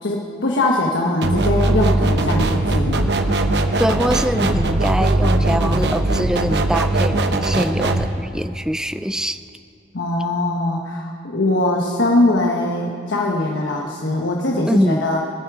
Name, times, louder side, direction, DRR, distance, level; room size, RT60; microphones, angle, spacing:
voice 1, 0.0-3.0 9.9-15.2, left 2 dB, 85° left, -1 dB, 1.3 m, -21 dB
sound 1, 1.2-8.1, right 2 dB, 70° right, 0.9 m, -19 dB
voice 2, 3.8-9.4 14.7-15.1, equal, 5° right, 11 dB, 0.3 m, -23 dB
24.0 x 10.0 x 4.9 m, 2.6 s
head